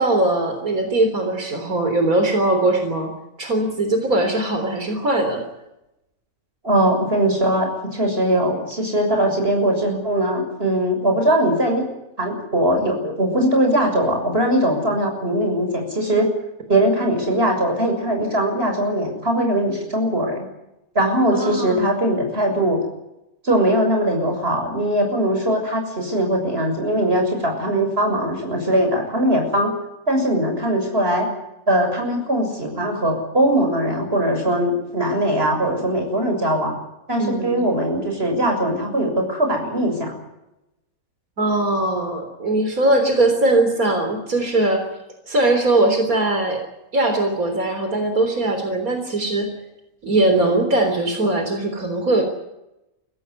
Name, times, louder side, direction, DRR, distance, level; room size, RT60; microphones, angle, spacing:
voice 1, 0.0-3.1 3.4-5.4 21.3-21.9 37.2-37.6 41.4-44.8 45.3-46.6 46.9-49.5 50.0-52.2, right 2 dB, 80° right, 5 dB, 4.1 m, -20 dB
voice 2, 6.6-11.8 12.2-16.3 16.7-20.5 20.9-22.8 23.4-29.7 30.1-31.3 31.7-36.7 37.1-40.1, right 1 dB, 45° right, 3 dB, 7.0 m, -20 dB
23.5 x 16.5 x 9.7 m, 0.91 s
omnidirectional pair, 1.5 m